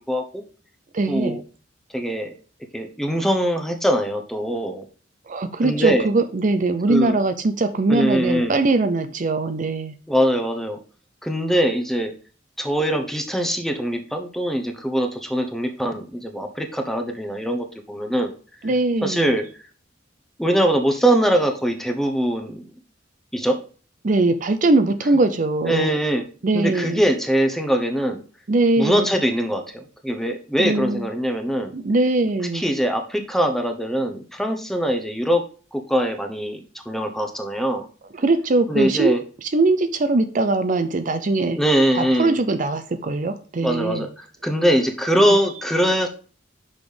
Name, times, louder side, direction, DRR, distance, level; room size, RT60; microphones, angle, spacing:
voice 1, 0.1-0.4 1.1-1.4 1.9-2.3 2.7-4.8 5.6-6.1 6.9-7.2 7.9-8.6 10.1-10.8 11.2-12.1 12.6-18.3 19.0-19.4 20.4-22.7 23.3-23.6 25.6-26.2 26.5-28.2 28.8-31.7 32.5-35.4 35.7-37.9 38.7-39.2 41.6-42.4 43.6-46.1, equal, ahead, 4 dB, 0.9 m, -22 dB
voice 2, 0.9-1.4 5.3-9.9 18.6-19.3 24.0-25.9 26.4-27.0 28.5-29.1 30.6-31.0 31.7-32.6 38.2-39.1 39.4-41.6 41.9-44.1, right 2 dB, 45° right, 9 dB, 0.5 m, -21 dB
6.1 x 5.2 x 5.0 m, 0.39 s
head